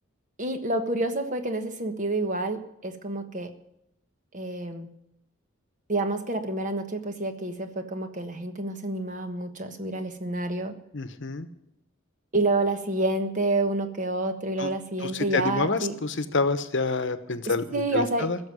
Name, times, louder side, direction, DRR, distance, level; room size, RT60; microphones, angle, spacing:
voice 1, 0.4-3.5 4.3-4.9 5.9-10.7 12.3-15.9 17.7-18.3, right 2 dB, 35° right, 7 dB, 1.4 m, -28 dB
voice 2, 10.9-11.5 14.6-14.7 15.0-18.4, left 3 dB, 60° left, 11 dB, 1.0 m, -28 dB
16.0 x 7.2 x 9.8 m, 0.80 s
head